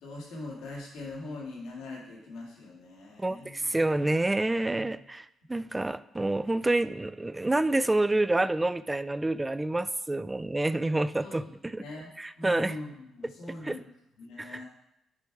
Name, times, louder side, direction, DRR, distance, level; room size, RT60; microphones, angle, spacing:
voice 1, 0.0-3.6 4.8-5.0 11.2-13.9 14.2-14.7, left 2 dB, 90° left, -3 dB, 2.0 m, -42 dB
voice 2, 3.2-11.8 12.2-12.8 13.6-13.8 14.4-14.6, right 2 dB, 15° right, 15 dB, 0.3 m, -28 dB
9.8 x 4.4 x 4.7 m, 0.82 s
cardioid pair, 90°, 0 cm